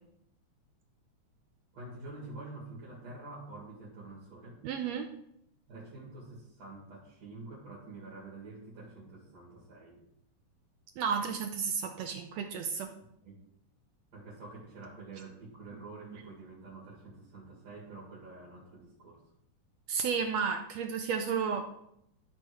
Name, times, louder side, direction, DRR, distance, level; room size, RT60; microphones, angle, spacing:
voice 1, 1.7-4.6 5.7-10.0 13.2-13.4 14.1-19.2, right 2 dB, 60° right, -6 dB, 3.4 m, -47 dB
voice 2, 4.6-5.1 11.0-12.9 19.9-21.9, right 6 dB, 75° right, 5 dB, 1.6 m, -32 dB
12.5 x 4.4 x 4.8 m, 0.76 s
omnidirectional pair, 3.5 m